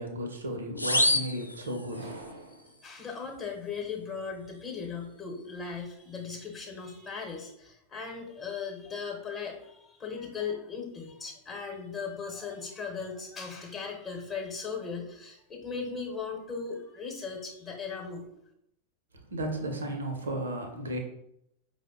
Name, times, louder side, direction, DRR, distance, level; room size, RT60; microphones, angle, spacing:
voice 1, 0.0-2.6 19.3-21.0, right 1 dB, 70° right, 3 dB, 0.8 m, -34 dB
sound 1, 0.8-2.3, left 1 dB, 85° left, 0.3 m, -28 dB
voice 2, 2.7-18.3, left 5 dB, 25° left, 0 dB, 0.9 m, -38 dB
5.0 x 2.1 x 3.7 m, 0.77 s
figure-of-eight pair, 90°, 0 cm